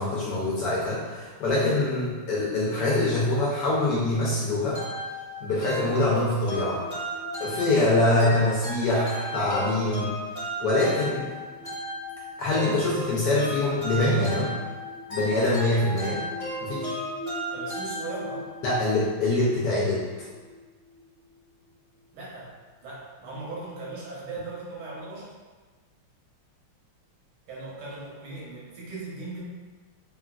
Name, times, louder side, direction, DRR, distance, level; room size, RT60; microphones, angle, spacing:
voice 1, 0.0-4.8 5.4-6.8 7.4-10.2 10.6-11.3 12.4-14.5 15.1-16.2 16.6-17.0 18.6-20.1, left 2 dB, 70° left, -7 dB, 1.0 m, -24 dB
sound 1, 4.7-18.6, equal, 35° left, 1.4 m, -35 dB
sound 2, 6.3-22.1, left 1 dB, 75° right, 1.2 m, -45 dB
voice 2, 17.5-18.5 22.1-22.5 22.8-25.3 27.5-29.4, right 3 dB, 90° right, -6 dB, 1.8 m, -38 dB
3.8 x 2.4 x 2.3 m, 1.4 s
omnidirectional pair, 2.3 m